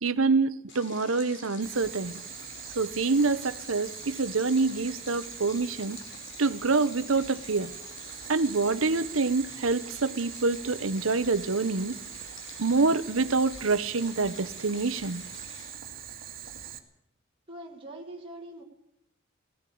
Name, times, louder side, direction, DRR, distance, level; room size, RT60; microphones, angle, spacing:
voice 1, 0.0-2.2 2.8-6.0 6.4-7.7 8.3-12.0 12.6-15.2, right 4 dB, 80° right, 0.9 m, -26 dB
Stream, 0.7-15.7, left 3 dB, 60° left, 5.2 m, -48 dB
Boiling, 1.6-16.8, right 9 dB, 45° right, 2.1 m, -43 dB
voice 2, 17.5-18.6, right 1 dB, 25° right, 2.1 m, -42 dB
18.0 x 17.0 x 8.5 m
head